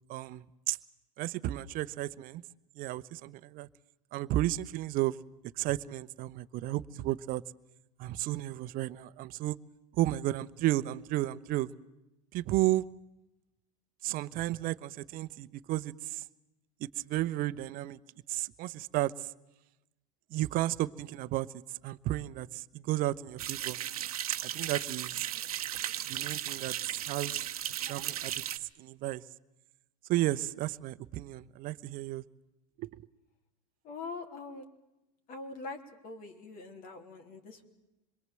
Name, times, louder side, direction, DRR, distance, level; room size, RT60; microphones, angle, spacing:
voice 1, 0.1-0.8 1.2-2.4 2.8-3.7 4.1-5.2 5.6-7.4 8.0-9.6 10.0-11.7 12.3-12.9 14.0-16.2 16.8-18.0 18.3-19.3 20.3-21.5 21.8-23.8 24.4-25.3 26.1-26.7 27.1-27.4 27.9-28.3 28.8-29.2 30.1-32.2 32.8-32.9, right 15 dB, 50° right, 15 dB, 0.9 m, -33 dB
sound 1, 23.4-28.6, right 11 dB, 85° right, 1.0 m, -36 dB
voice 2, 33.8-34.7 35.3-37.7, left 3 dB, 50° left, 5 dB, 3.4 m, -43 dB
26.5 x 22.0 x 7.7 m, 0.95 s
hypercardioid pair, 90°, 19 cm